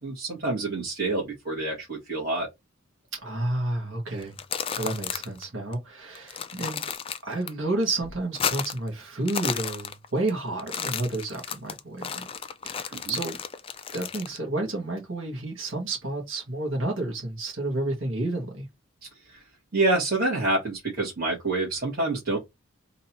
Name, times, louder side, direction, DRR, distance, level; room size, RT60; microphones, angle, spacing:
voice 1, 0.0-2.5 12.9-13.1 19.0-19.4 19.7-22.4, right 2 dB, 45° right, 1.9 m, -27 dB
voice 2, 3.1-4.4 4.8-6.8 7.2-12.3 12.6-13.4 13.9-18.7, right 2 dB, 60° right, 1.6 m, -30 dB
sound 1, 4.2-5.4 5.7-5.8 6.2-7.5 7.8-8.9 9.2-10.3 10.6-14.4, left 7 dB, 25° left, 0.4 m, -33 dB
3.9 x 2.7 x 4.3 m
head